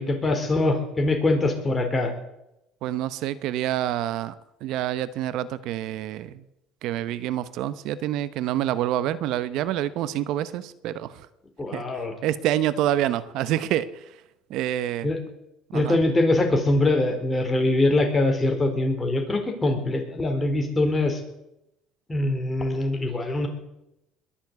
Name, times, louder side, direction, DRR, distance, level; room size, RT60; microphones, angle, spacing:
voice 1, 0.0-2.1 11.6-12.1 15.0-15.2 15.7-21.2 22.1-23.5, left 2 dB, 20° left, 4 dB, 4.1 m, -23 dB
voice 2, 2.8-4.3 4.6-6.3 6.8-11.1 11.7-11.8 12.2-13.9 14.5-15.1 15.7-16.0, right 12 dB, 70° right, 15 dB, 0.9 m, -27 dB
21.5 x 7.3 x 8.2 m, 0.87 s
supercardioid pair, 95°, 0 cm